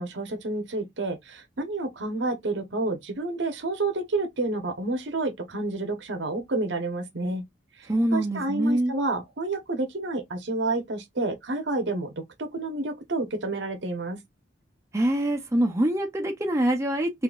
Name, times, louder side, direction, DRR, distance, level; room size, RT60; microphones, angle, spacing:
voice 1, 0.0-7.4 7.8-14.2, right 2 dB, 70° right, 0.9 m, -29 dB
voice 2, 7.9-8.9 14.9-17.2, right 1 dB, 15° right, 0.6 m, -24 dB
3.9 x 2.6 x 2.4 m
head